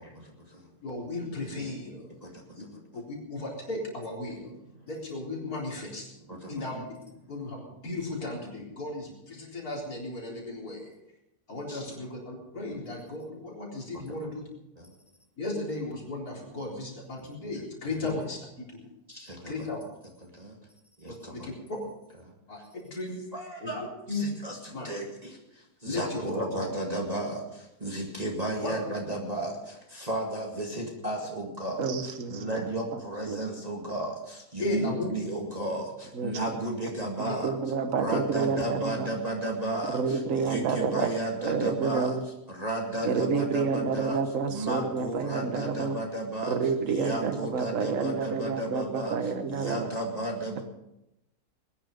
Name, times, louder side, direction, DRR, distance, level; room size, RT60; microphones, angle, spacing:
voice 1, 0.0-0.7 2.2-2.8 4.8-4.9 5.4-5.5 6.3-6.6 11.7-11.8 14.1-14.2 14.8-14.9 19.1-19.5 20.2-20.6 21.0-21.5 22.2-22.3 23.3-37.5 38.0-42.2 42.5-44.2 44.5-46.6 46.9-50.6, right 1 dB, 25° right, -1 dB, 2.1 m, -34 dB
voice 2, 0.8-2.1 2.5-2.6 2.9-4.5 4.9-6.1 6.5-6.8 7.3-10.9 11.5-14.5 15.4-18.9 19.5-19.8 21.1-21.8 22.5-23.2 23.6-23.7 24.1-24.2 24.7-24.9 25.8-26.5 28.6-28.7 34.6-35.1 37.2-37.4, left 2 dB, 65° left, -3 dB, 4.6 m, -35 dB
voice 3, 31.8-32.6 32.9-33.0 33.3-33.4 36.1-36.6 37.4-39.1 39.9-42.2 43.0-46.0 46.5-49.9, right 5 dB, 55° right, 8 dB, 1.6 m, -29 dB
20.0 x 11.0 x 5.3 m, 0.87 s
omnidirectional pair, 1.7 m